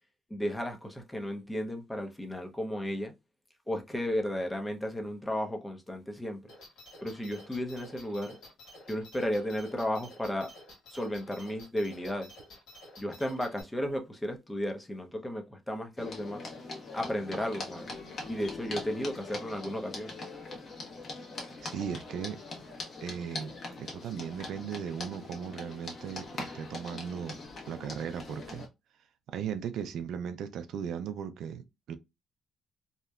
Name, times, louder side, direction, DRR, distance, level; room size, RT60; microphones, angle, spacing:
voice 1, 0.3-3.1 3.7-6.4 7.0-8.3 8.9-10.5 10.9-12.3 13.0-16.4 16.9-17.9 18.3-20.1, equal, 10° left, 0.7 m, -34 dB
sound 1, 6.5-13.6, left 1 dB, 80° left, 1.3 m, -52 dB
sound 2, 16.0-28.7, left 3 dB, 50° left, 1.0 m, -42 dB
voice 2, 21.6-22.4 23.0-27.4 27.7-28.7 29.3-31.9, right 8 dB, 75° right, 0.3 m, -37 dB
2.8 x 2.1 x 2.2 m
cardioid pair, 90°, 0 cm